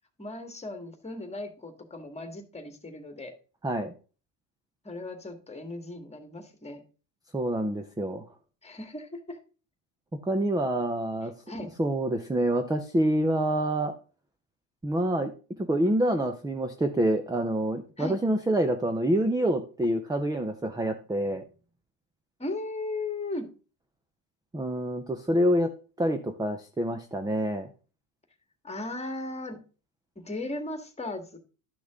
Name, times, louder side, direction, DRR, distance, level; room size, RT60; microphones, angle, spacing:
voice 1, 0.2-3.3 4.8-6.8 8.6-9.4 11.5-11.7 18.0-18.2 22.4-23.5 28.6-29.6 30.2-31.4, left 2 dB, 15° left, 7 dB, 1.8 m, -37 dB
voice 2, 3.6-3.9 7.3-8.2 10.2-11.3 11.8-13.9 14.8-15.3 15.6-21.4 24.5-25.7 26.0-27.7, right 1 dB, 10° right, 7 dB, 0.7 m, -27 dB
12.0 x 6.1 x 3.7 m, 0.36 s
supercardioid pair, 105°, 48 cm